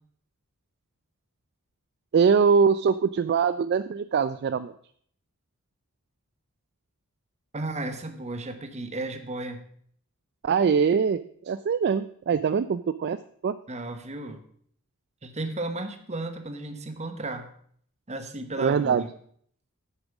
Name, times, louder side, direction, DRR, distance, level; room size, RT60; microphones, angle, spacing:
voice 1, 2.1-4.7 10.4-13.2 13.4-13.5 18.6-19.0, right 6 dB, 50° right, 13 dB, 0.3 m, -23 dB
voice 2, 7.5-9.7 13.7-14.4 15.2-17.5 18.1-19.1, right 2 dB, 30° right, 7 dB, 1.1 m, -34 dB
9.0 x 7.2 x 5.9 m, 0.62 s
head